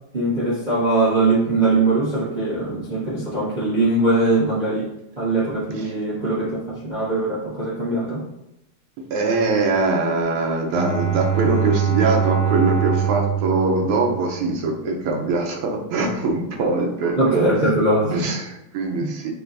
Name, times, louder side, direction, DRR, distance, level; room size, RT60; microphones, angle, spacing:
voice 1, 0.1-4.9 5.2-8.2 17.2-18.2 19.0-19.1, right 2 dB, 35° right, -8 dB, 0.7 m, -21 dB
voice 2, 9.1-17.5 18.1-19.3, right 3 dB, 90° right, 1 dB, 1.6 m, -22 dB
Bowed string instrument, 10.7-14.6, right 8 dB, 75° right, 2.0 m, -23 dB
6.7 x 2.3 x 2.5 m, 0.87 s
omnidirectional pair, 2.4 m